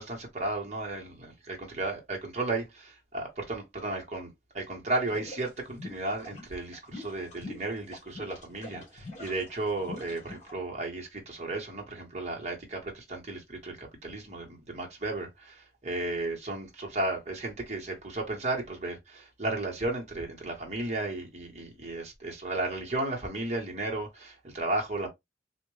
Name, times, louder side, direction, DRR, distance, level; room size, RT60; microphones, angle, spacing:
voice 1, 0.0-25.1, right 2 dB, 40° right, 1.2 m, -34 dB
sound 1, 5.1-10.5, left 2 dB, 40° left, 1.6 m, -44 dB
3.5 x 2.5 x 3.2 m
head